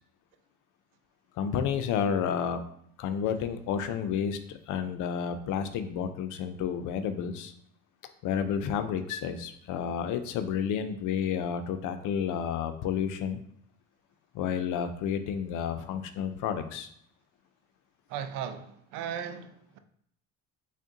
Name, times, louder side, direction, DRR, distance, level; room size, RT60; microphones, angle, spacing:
voice 1, 1.4-2.6 3.0-7.5 8.2-13.4 14.3-16.9, left 7 dB, 65° left, 0.5 m, -31 dB
voice 2, 18.1-19.8, right 8 dB, 75° right, 0.5 m, -37 dB
3.5 x 2.2 x 3.8 m
supercardioid pair, 85°, 34 cm